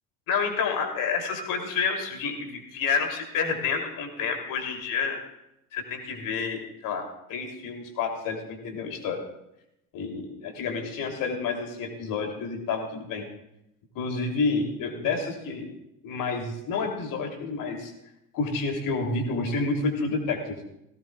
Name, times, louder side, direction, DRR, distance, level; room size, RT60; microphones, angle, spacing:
voice 1, 0.3-5.2 5.7-7.0 7.3-9.2 9.9-13.2 13.9-15.7 16.0-17.9 18.3-20.5, left 4 dB, 45° left, 3 dB, 3.2 m, -29 dB
18.0 x 17.5 x 2.4 m, 0.84 s
figure-of-eight pair, 65°, 45 cm